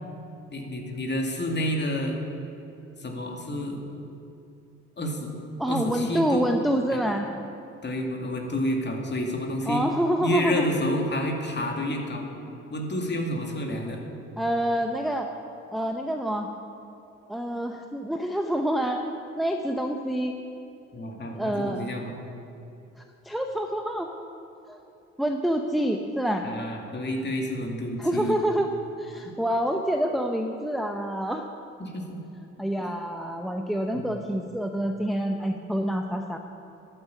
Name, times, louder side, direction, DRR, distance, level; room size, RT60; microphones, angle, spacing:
voice 1, 0.5-2.2 3.0-3.8 5.0-5.3 5.7-6.5 6.9-7.0 7.8-9.8 10.2-12.3 12.7-14.0 20.9-22.1 26.4-28.4 31.8-32.2 33.9-34.2, left 1 dB, 30° left, 1 dB, 2.4 m, -29 dB
voice 2, 5.6-7.3 9.7-10.7 14.4-15.3 15.7-16.5 17.3-19.0 19.4-20.3 21.3-21.8 23.2-24.1 24.7-24.8 25.2-26.5 28.0-28.7 29.0-31.5 32.6-36.4, equal, ahead, 4 dB, 0.8 m, -27 dB
11.0 x 9.0 x 7.1 m, 2.8 s
figure-of-eight pair, 45°, 36 cm